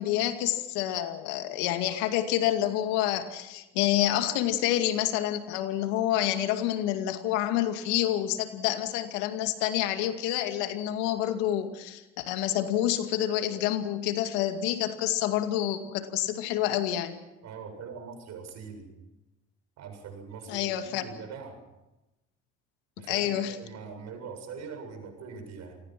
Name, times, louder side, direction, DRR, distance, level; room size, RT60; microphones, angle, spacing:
voice 1, 0.0-17.2 20.5-21.0 23.1-23.6, left 12 dB, 85° left, 7 dB, 2.3 m, -28 dB
voice 2, 17.4-18.9 19.8-21.6 23.0-25.8, right 5 dB, 65° right, 5 dB, 7.7 m, -42 dB
28.0 x 20.0 x 6.0 m, 1.0 s
supercardioid pair, 70°, 29 cm